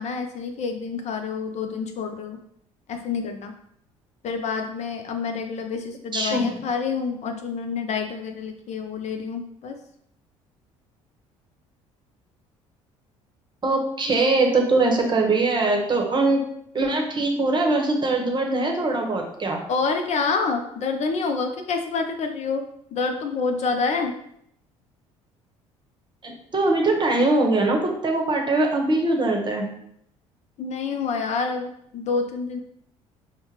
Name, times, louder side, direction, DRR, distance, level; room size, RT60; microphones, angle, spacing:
voice 1, 0.0-2.4 2.9-3.5 4.2-9.8 19.7-22.7 22.9-24.1 30.6-32.6, left 4 dB, 45° left, 5 dB, 0.5 m, -27 dB
voice 2, 6.1-6.6 13.6-16.4 16.7-19.6 26.2-29.7, right 2 dB, 30° right, 2 dB, 0.9 m, -22 dB
5.6 x 2.2 x 3.0 m, 0.71 s
figure-of-eight pair, 55°, 16 cm